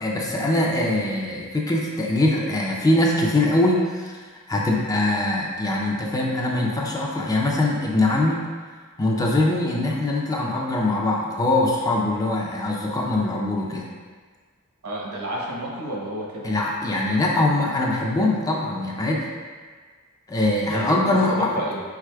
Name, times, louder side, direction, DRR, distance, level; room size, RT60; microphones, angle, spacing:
voice 1, 0.0-4.1 4.5-8.5 9.0-13.9 16.4-19.2 20.3-21.5, left 2 dB, 15° left, -2 dB, 0.4 m, -22 dB
voice 2, 14.8-16.5 20.6-21.8, right 1 dB, 70° right, -3 dB, 0.9 m, -31 dB
4.7 x 4.2 x 2.2 m, 1.5 s
head